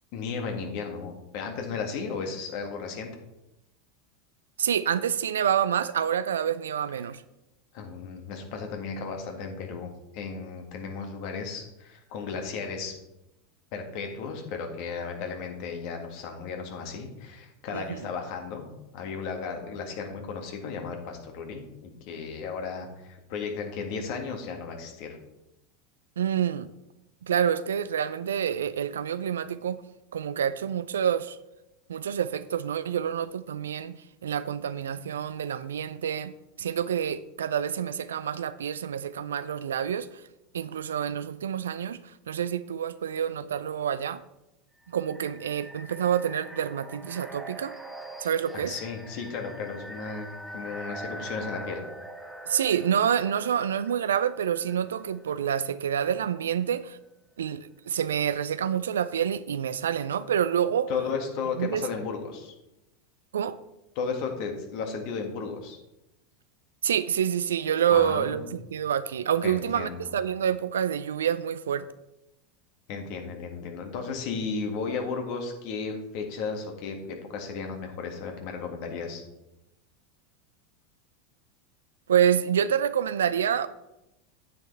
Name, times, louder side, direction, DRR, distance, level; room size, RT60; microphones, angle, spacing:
voice 1, 0.1-3.1 7.7-12.9 13.7-25.1 48.5-51.8 60.9-62.6 64.0-65.8 67.9-68.5 69.4-70.1 72.9-79.2, left 5 dB, 55° left, 1.8 m, -34 dB
voice 2, 4.6-7.2 17.7-18.0 26.2-26.7 27.2-29.8 30.1-31.4 31.9-36.3 36.6-40.1 40.5-42.0 42.3-44.2 44.9-47.7 48.2-48.7 52.5-57.0 57.4-60.9 61.6-61.9 63.3-63.6 66.8-71.8 82.1-83.7, right 9 dB, 80° right, 0.3 m, -27 dB
sound 1, 44.8-55.6, right 1 dB, ahead, 1.2 m, -43 dB
9.3 x 8.2 x 3.3 m
hypercardioid pair, 85°, 0 cm